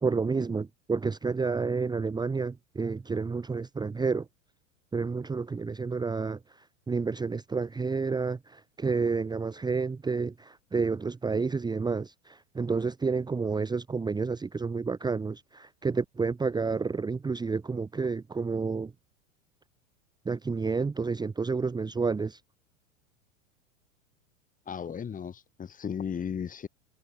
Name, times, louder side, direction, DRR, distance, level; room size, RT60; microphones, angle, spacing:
voice 1, 0.0-4.2 4.9-6.4 6.9-18.9 20.2-22.4, right 4 dB, 10° right, 1.5 m, -30 dB
voice 2, 24.7-26.7, left 7 dB, 20° left, 3.0 m, -35 dB
figure-of-eight pair, 95°, 41 cm